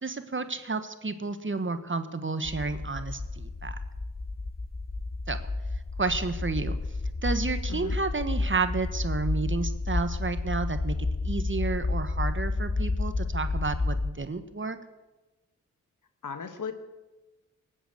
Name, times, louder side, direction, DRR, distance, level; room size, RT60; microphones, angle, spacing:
voice 1, 0.0-3.7 5.3-5.4 6.0-6.8 7.2-14.8, right 3 dB, 40° right, 10 dB, 1.4 m, -31 dB
sound 1, 2.4-14.1, left 3 dB, 30° left, 1.0 m, -31 dB
voice 2, 7.7-8.0 16.2-16.7, left 6 dB, 80° left, 8 dB, 1.6 m, -36 dB
19.0 x 8.1 x 8.2 m, 1.1 s
cardioid pair, 50°, 31 cm